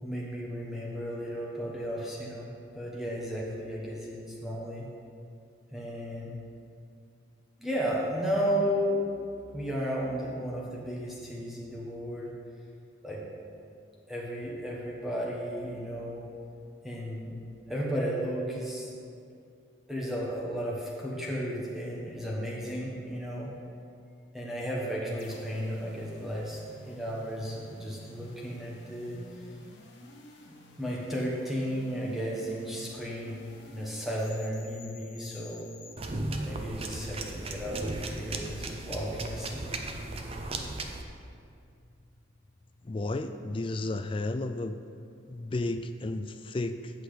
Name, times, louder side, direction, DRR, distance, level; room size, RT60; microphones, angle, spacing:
voice 1, 0.0-4.8 5.7-6.3 7.6-9.0 9.5-12.3 13.0-13.2 14.1-16.3 16.8-17.4 17.7-18.9 19.9-23.5 24.3-29.2 30.8-33.4 33.7-35.7 36.5-39.7, equal, ahead, -5 dB, 1.3 m, -34 dB
sound 1, 25.2-36.0, left 2 dB, 65° left, 1.1 m, -51 dB
sound 2, 36.0-41.0, right 2 dB, 30° right, 0.5 m, -36 dB
voice 2, 42.8-44.8 45.3-47.0, left 2 dB, 25° left, 9 dB, 0.3 m, -33 dB
8.2 x 6.2 x 5.0 m, 2.4 s
head